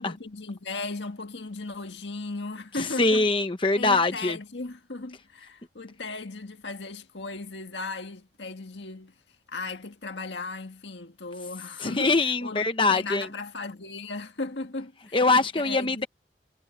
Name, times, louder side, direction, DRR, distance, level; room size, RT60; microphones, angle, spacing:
voice 1, 0.0-3.3 3.8-9.1 9.5-15.2 15.6-16.1, left 3 dB, 90° left, 1.8 m, -36 dB
voice 2, 3.0-4.4 11.8-13.3 15.1-16.1, left 3 dB, 30° left, 0.9 m, -23 dB
head